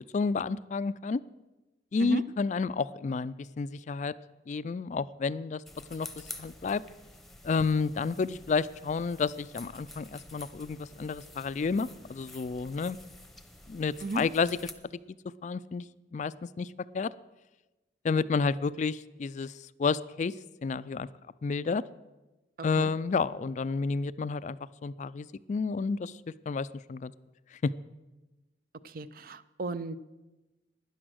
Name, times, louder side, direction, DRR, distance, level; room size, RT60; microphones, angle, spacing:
voice 1, 0.1-1.2 1.9-4.1 4.5-5.6 5.9-6.1 6.4-6.8 7.4-13.0 13.7-14.7 15.4-15.9 16.1-17.1 18.0-19.5 19.8-20.3 20.6-21.1 21.4-21.8 22.6-26.1 26.5-27.1 27.6-27.7, left 4 dB, 40° left, 17 dB, 0.3 m, -30 dB
sound 1, 5.7-14.7, left 1 dB, ahead, 0.8 m, -49 dB
voice 2, 28.8-30.0, right 2 dB, 55° right, 15 dB, 0.5 m, -34 dB
12.0 x 10.0 x 6.3 m, 1.1 s
head